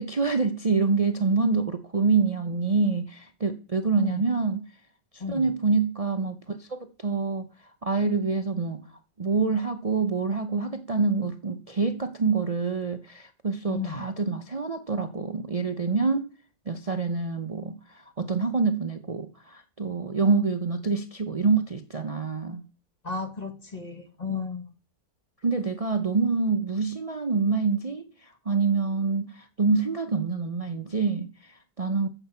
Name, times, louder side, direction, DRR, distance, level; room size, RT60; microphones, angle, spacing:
voice 1, 0.0-4.6 5.1-7.5 7.8-8.8 9.2-16.3 16.7-22.6 25.4-32.1, right 4 dB, 55° right, 0.4 m, -26 dB
voice 2, 13.7-14.1 23.0-24.7, left 5 dB, 25° left, 1.4 m, -33 dB
14.0 x 7.8 x 5.7 m
omnidirectional pair, 2.0 m